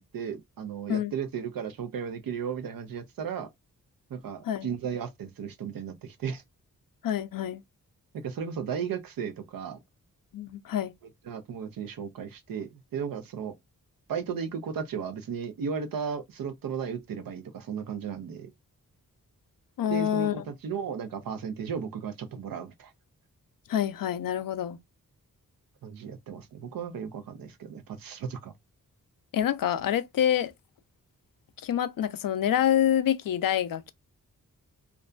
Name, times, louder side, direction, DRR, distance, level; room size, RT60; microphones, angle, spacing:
voice 1, 0.1-3.5 4.1-6.4 8.1-9.8 11.3-13.5 14.1-18.5 19.9-22.9 25.8-28.5, right 7 dB, 90° right, 0.6 m, -35 dB
voice 2, 7.0-7.6 10.3-10.9 19.8-20.4 23.7-24.8 29.3-30.5 31.6-33.9, left 10 dB, 80° left, 0.5 m, -26 dB
2.5 x 2.2 x 2.4 m
cardioid pair, 75°, 33 cm